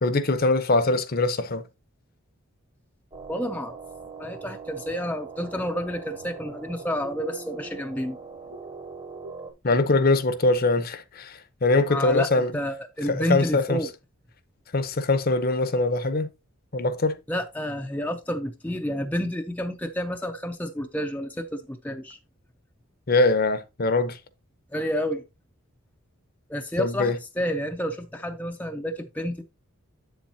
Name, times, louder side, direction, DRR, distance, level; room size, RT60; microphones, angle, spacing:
voice 1, 0.0-1.6 9.6-12.5 13.1-13.8 14.7-16.3 16.7-17.2 23.1-24.2 26.8-27.2, left 2 dB, 45° left, 0.7 m, -22 dB
sound 1, 3.1-9.5, right 4 dB, 25° right, 1.0 m, -41 dB
voice 2, 3.3-3.8 4.2-8.2 11.9-13.9 17.3-22.2 24.7-25.2 26.5-29.4, equal, 5° left, 0.5 m, -30 dB
7.9 x 7.2 x 2.7 m
head